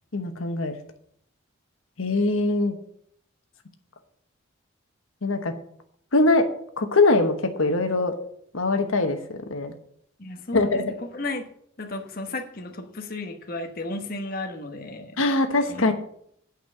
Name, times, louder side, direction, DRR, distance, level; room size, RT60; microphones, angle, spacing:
voice 1, 0.1-0.7 2.0-2.7 5.2-5.5 6.1-6.5 6.8-8.1 8.5-9.2 9.5-9.7 10.5-10.9 15.2-15.9, left 2 dB, 90° left, 6 dB, 1.1 m, -22 dB
voice 2, 10.2-11.5 11.8-15.2 15.7-15.9, left 2 dB, 45° left, 4 dB, 1.1 m, -34 dB
9.1 x 5.4 x 7.5 m, 0.66 s
head